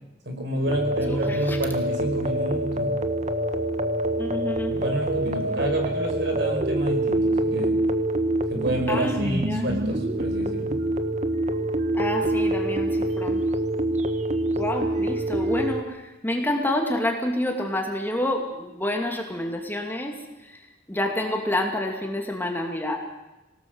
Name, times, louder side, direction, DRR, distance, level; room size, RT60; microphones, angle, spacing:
voice 1, 0.2-3.1 4.7-7.8 8.5-10.8, right 1 dB, 65° right, 3 dB, 5.8 m, -29 dB
sound 1, 0.7-15.8, right 1 dB, 35° right, 1.4 m, -26 dB
voice 2, 1.1-1.6 4.2-4.8 8.9-9.7 11.9-13.4 14.6-23.0, left 1 dB, 10° left, 2 dB, 2.6 m, -28 dB
25.5 x 18.5 x 8.0 m, 1.0 s
head